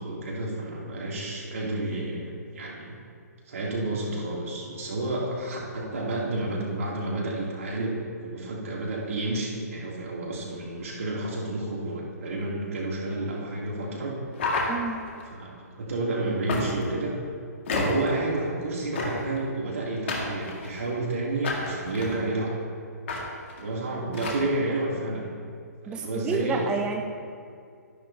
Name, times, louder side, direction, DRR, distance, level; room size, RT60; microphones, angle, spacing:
voice 1, 0.0-2.9 3.5-14.1 15.3-17.1 17.7-22.5 23.6-25.3 25.8-26.7, right 2 dB, 55° right, -4 dB, 2.9 m, -30 dB
sound 1, 14.3-15.2 16.5-17.0 17.7-18.1 18.9-19.4 20.1-20.9 21.4-22.2 23.1-23.2 23.5-23.6 24.1-24.4, left 3 dB, 45° left, 2.0 m, -30 dB
voice 2, 14.7-15.0 25.9-27.0, right 5 dB, 10° right, 3 dB, 0.3 m, -29 dB
13.5 x 11.0 x 2.8 m, 2.3 s
figure-of-eight pair, 130°, 9 cm